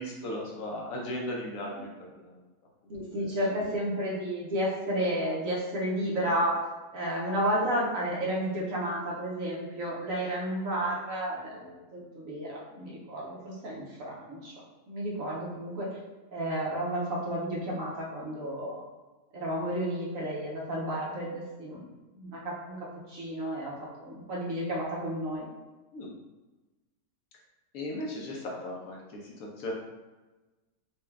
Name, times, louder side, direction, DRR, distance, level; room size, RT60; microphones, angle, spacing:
voice 1, 0.0-2.4 25.9-26.1 27.7-29.7, left 1 dB, 70° left, -1 dB, 1.0 m, -37 dB
voice 2, 2.9-6.6 6.9-14.5 14.9-15.9 16.3-18.8 19.3-21.9 22.1-23.7 24.0-25.5, right 1 dB, 60° right, -4 dB, 1.2 m, -32 dB
4.4 x 2.3 x 3.3 m, 1.2 s
omnidirectional pair, 1.7 m